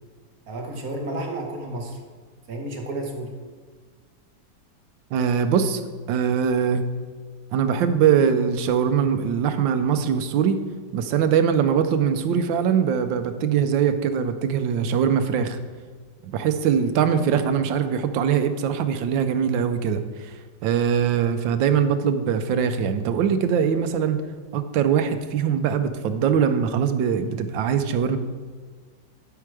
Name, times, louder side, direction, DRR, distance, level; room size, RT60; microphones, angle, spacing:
voice 1, 0.5-2.0 2.5-3.4, right 1 dB, 50° right, 2 dB, 1.5 m, -31 dB
voice 2, 5.1-5.8 6.1-6.8 7.5-10.6 10.9-15.6 16.2-20.3 20.6-24.2 24.5-28.2, right 7 dB, 80° right, 9 dB, 1.4 m, -22 dB
12.0 x 4.6 x 4.8 m, 1.5 s
omnidirectional pair, 2.1 m